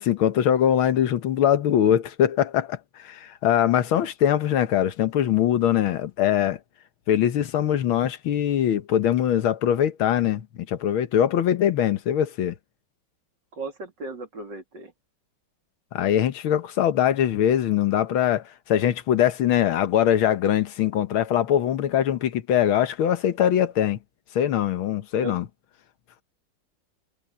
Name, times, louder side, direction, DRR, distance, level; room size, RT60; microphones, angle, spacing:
voice 1, 0.0-6.6 7.1-12.6 15.9-24.0 24.4-25.5, left 10 dB, 90° left, 1.9 m, -22 dB
voice 2, 13.5-14.9 25.2-25.4, right 2 dB, 60° right, 3.4 m, -36 dB
omnidirectional pair, 2.2 m